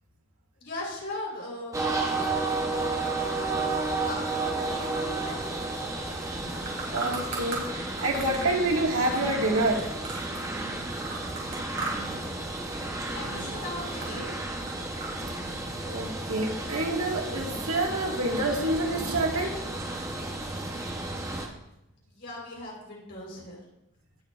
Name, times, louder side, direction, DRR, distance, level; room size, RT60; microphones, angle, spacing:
voice 1, 0.6-1.9 3.0-5.4 13.1-14.3 22.0-23.6, left 2 dB, 50° left, -3 dB, 4.0 m, -39 dB
sound 1, 1.7-21.5, right 2 dB, 15° right, 0.8 m, -32 dB
sound 2, 6.3-7.6 8.0-10.6 10.9-12.2 12.5-13.0 13.3-15.1, right 3 dB, 55° right, 3.1 m, -37 dB
voice 2, 6.9-9.9 15.9-19.6, right 2 dB, 85° right, 0 dB, 1.8 m, -27 dB
18.0 x 6.4 x 2.4 m, 0.87 s
head